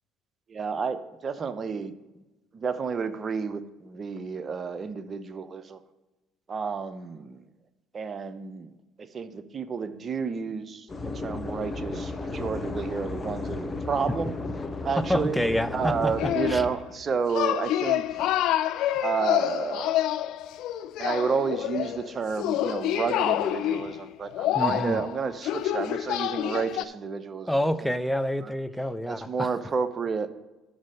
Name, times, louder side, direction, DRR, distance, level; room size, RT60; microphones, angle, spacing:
voice 1, 0.5-2.2 2.5-5.8 6.5-7.5 7.9-14.3 14.8-15.4 15.7-18.0 19.0-20.0 21.0-27.5 28.4-28.5 29.1-30.3, right 5 dB, 40° right, 12 dB, 0.7 m, -31 dB
sound 1, 10.9-16.7, left 3 dB, 25° left, 1.0 m, -34 dB
voice 2, 15.0-16.1 16.5-16.6 24.5-25.0 27.5-29.5, equal, ahead, 13 dB, 0.5 m, -27 dB
sound 2, 16.2-16.8 17.3-26.8, left 12 dB, 70° left, 0.4 m, -27 dB
6.3 x 6.3 x 7.4 m, 1.1 s
supercardioid pair, 70°, 0 cm